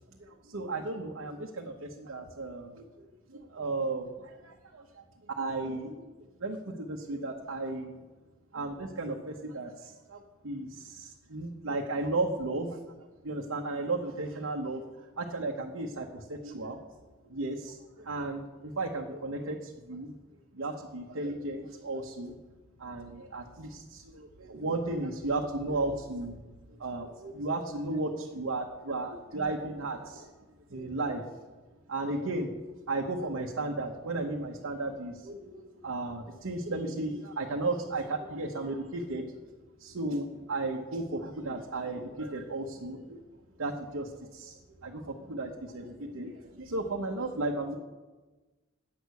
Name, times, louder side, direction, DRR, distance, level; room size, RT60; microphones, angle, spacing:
voice 1, 0.2-4.6 5.3-6.1 6.4-8.0 8.5-14.8 15.2-16.8 17.3-20.1 20.5-22.4 22.8-26.4 26.8-30.3 30.7-31.3 31.9-32.5 32.9-39.3 39.8-43.2 43.6-47.8, right 2 dB, 85° right, 0 dB, 1.0 m, -34 dB
9.4 x 6.5 x 8.2 m, 1.2 s
head